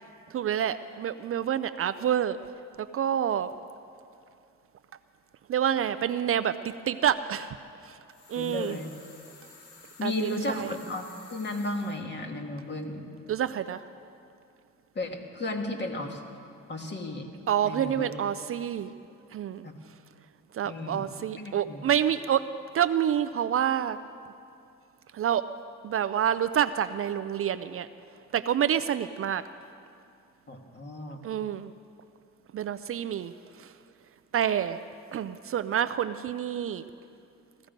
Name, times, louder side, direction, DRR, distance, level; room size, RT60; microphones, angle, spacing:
voice 1, 0.3-2.4 2.8-3.5 5.5-7.6 7.8-8.0 8.3-8.8 10.0-10.7 13.3-13.8 17.5-18.9 19.3-19.7 20.5-22.4 22.7-24.0 25.1-25.4 25.8-27.9 28.3-29.4 31.2-31.7 32.5-33.3 33.6-33.7 34.3-34.8 35.1-36.8, right 9 dB, 50° right, 12 dB, 0.5 m, -28 dB
sound 1, 8.1-12.0, left 3 dB, 80° left, 1.9 m, -52 dB
voice 2, 8.4-8.9 10.0-13.1 15.0-16.2 16.7-17.3 17.6-18.1 19.6-19.8 20.6-21.1 21.4-21.9 30.5-31.2, left 2 dB, 35° left, 2 dB, 1.9 m, -34 dB
16.5 x 14.0 x 5.2 m, 2.5 s
cardioid pair, 90°, 30 cm